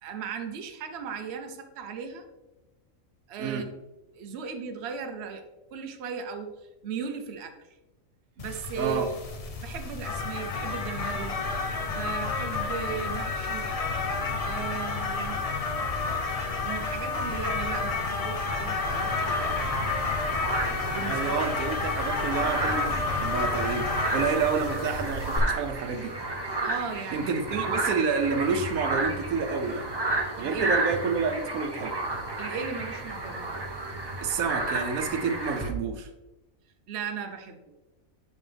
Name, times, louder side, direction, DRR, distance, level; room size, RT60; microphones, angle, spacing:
voice 1, 0.0-2.2 3.3-3.7 4.1-5.4 5.7-6.5 6.8-7.5 8.4-9.1 9.6-11.4 11.9-13.7 14.4-15.4 16.5-19.6 20.8-21.3 26.6-27.3 27.6-27.7 30.4-30.7 32.4-33.5 36.9-37.6, right 6 dB, 55° right, 5 dB, 0.9 m, -36 dB
sound 1, 8.4-25.4, left 4 dB, 40° left, 0.5 m, -30 dB
voice 2, 8.8-9.1 12.9-13.0 21.1-23.9 24.1-26.1 27.1-29.9 30.4-32.0 34.2-36.1, right 5 dB, 85° right, 7 dB, 1.2 m, -29 dB
sound 2, 18.9-35.7, right 2 dB, 20° right, 0.7 m, -32 dB
6.9 x 5.4 x 3.3 m, 1.0 s
omnidirectional pair, 1.4 m